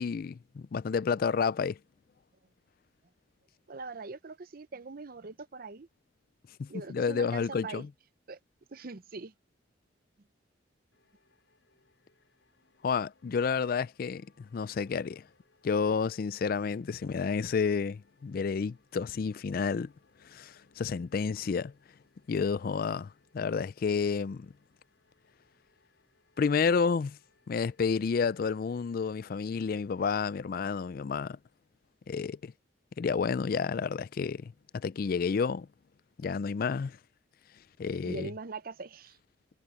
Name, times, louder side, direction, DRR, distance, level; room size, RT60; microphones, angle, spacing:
voice 1, 0.0-1.8 6.6-7.9 12.8-15.2 15.6-19.9 20.2-21.7 22.3-24.5 26.4-27.2 27.5-31.4 32.1-32.5 33.0-35.7 36.2-37.0 37.8-38.3, left 5 dB, 50° left, 0.4 m, -30 dB
voice 2, 3.7-5.9 6.7-7.8 8.3-8.4 8.7-9.3 38.0-39.2, right 3 dB, 50° right, 0.7 m, -42 dB
sound 1, 10.9-30.3, left 3 dB, 85° left, 6.4 m, -70 dB
head